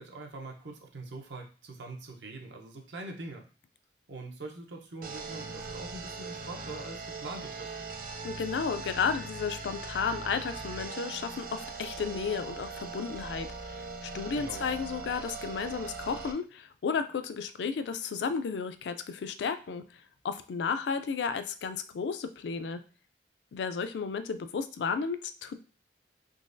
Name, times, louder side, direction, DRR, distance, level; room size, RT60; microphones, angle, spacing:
voice 1, 0.0-3.5 4.1-7.8 14.3-14.7, right 2 dB, 80° right, 2 dB, 0.8 m, -43 dB
sound 1, 5.0-16.3, right 4 dB, 50° right, 0.5 m, -40 dB
voice 2, 8.2-22.8 23.5-25.6, left 5 dB, 70° left, 10 dB, 0.3 m, -33 dB
3.8 x 3.0 x 2.6 m, 0.36 s
head